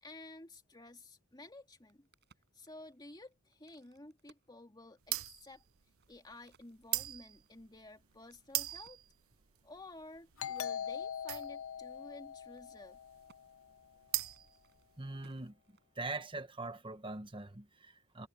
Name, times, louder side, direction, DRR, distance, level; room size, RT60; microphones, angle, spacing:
voice 1, 0.0-2.1 2.5-5.6 6.1-9.0 9.6-13.0, left 2 dB, 20° left, 2.3 m, -53 dB
Crack, 1.6-5.3 5.8-9.1 9.7-11.1 11.4-11.5 11.8-12.1 12.4-12.9 13.3-13.4 14.1-16.3, right 4 dB, 50° right, 6.0 m, -70 dB
sound 1, 5.0-15.4, right 16 dB, 75° right, 0.8 m, -41 dB
Doorbell, 10.4-13.7, left 8 dB, 70° left, 0.8 m, -42 dB
voice 2, 15.0-15.6 15.9-18.3, right 2 dB, 25° right, 1.4 m, -42 dB
head